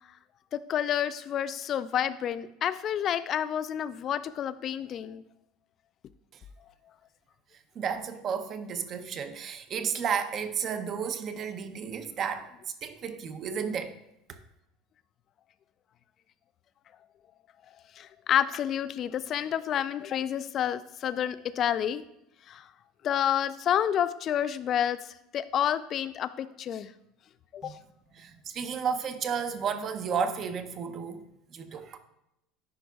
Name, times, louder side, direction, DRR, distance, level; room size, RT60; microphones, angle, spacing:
voice 1, 0.5-5.2 18.0-22.0 22.5-22.7 23.0-26.9 27.5-27.8, left 10 dB, 40° left, 0.3 m, -29 dB
voice 2, 7.8-12.5 12.8-13.9 27.6-27.7 28.2-31.2 31.5-32.0, right 6 dB, 40° right, 0.6 m, -32 dB
10.0 x 4.9 x 2.3 m
supercardioid pair, 125°, 0 cm